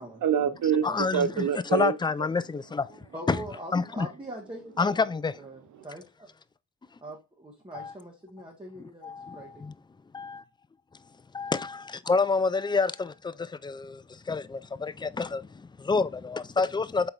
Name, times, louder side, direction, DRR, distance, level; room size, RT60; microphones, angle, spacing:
voice 1, 0.0-5.8, right 8 dB, 80° right, 0.6 m, -31 dB
voice 2, 0.8-1.2 1.7-2.9 3.3-3.4 3.7-4.1 4.8-5.3 7.7-7.9 9.0-9.7 10.1-10.4 11.3-17.1, left 4 dB, 15° left, 0.3 m, -28 dB
voice 3, 3.1-6.3 7.0-9.7, right 1 dB, 15° right, 1.2 m, -42 dB
4.5 x 3.8 x 2.4 m
cardioid pair, 50°, 30 cm